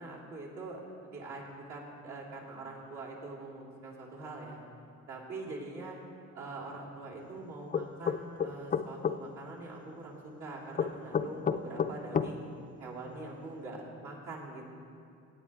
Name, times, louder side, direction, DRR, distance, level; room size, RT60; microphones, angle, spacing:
voice 1, 0.0-4.6 5.1-6.0 6.3-12.4 12.8-14.6, right 2 dB, 70° right, -6 dB, 3.2 m, -43 dB
sound 1, 7.7-9.2 10.8-12.3, left 7 dB, 30° left, 0.4 m, -29 dB
18.0 x 8.6 x 3.6 m, 2.5 s
cardioid pair, 90°, 30 cm